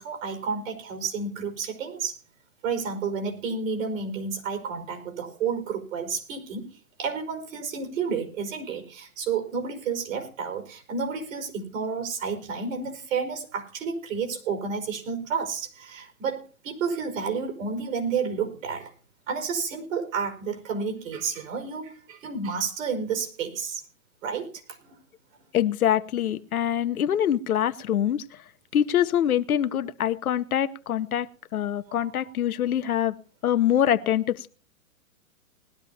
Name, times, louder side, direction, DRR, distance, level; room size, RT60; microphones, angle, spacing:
voice 1, 0.0-2.2 2.6-18.9 19.3-23.8 24.2-24.9 31.9-32.0, right 5 dB, 65° right, 5 dB, 5.3 m, -31 dB
voice 2, 25.5-28.2 28.7-31.3 31.5-33.1 33.4-34.5, left 10 dB, 80° left, 11 dB, 1.0 m, -24 dB
20.0 x 12.5 x 2.8 m, 0.38 s
hypercardioid pair, 135°, 43 cm